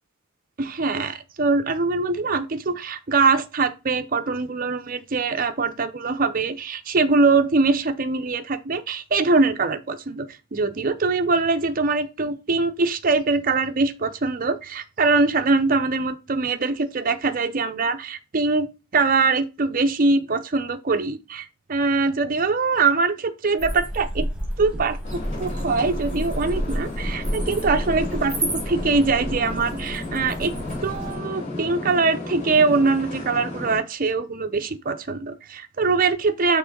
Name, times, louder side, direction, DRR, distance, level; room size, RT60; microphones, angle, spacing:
voice 1, 0.6-24.3 24.6-25.0 25.4-30.5 30.8-36.6, right 3 dB, 40° right, 0.6 m, -23 dB
sound 1, 23.6-31.1, equal, 5° right, 2.1 m, -30 dB
sound 2, 25.0-33.8, left 2 dB, 35° left, 3.5 m, -33 dB
5.9 x 3.7 x 5.2 m
head